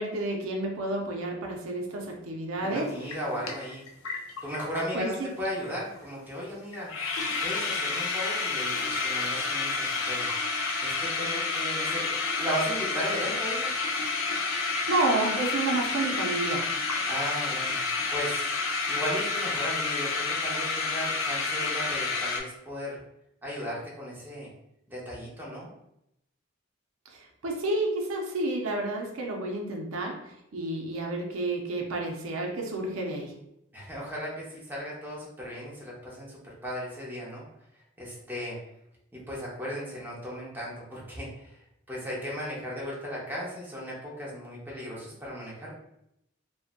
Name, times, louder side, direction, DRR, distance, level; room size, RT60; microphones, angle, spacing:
voice 1, 0.0-3.1 4.9-5.4 14.5-16.8 27.1-33.4, right 2 dB, 85° right, 1 dB, 0.5 m, -30 dB
voice 2, 2.6-3.9 4.4-6.9 7.4-10.3 10.8-13.7 17.1-23.0 23.4-24.5 24.9-25.7 33.7-37.5 38.0-38.6 39.1-45.7, equal, 10° right, -6 dB, 0.7 m, -36 dB
sound 1, 2.7-2.8 3.1-4.9 5.1-5.2 5.4-5.7 6.0-6.1 6.4-6.5 6.7-22.4, left 4 dB, 80° left, 0.4 m, -29 dB
2.5 x 2.1 x 2.5 m, 0.80 s
head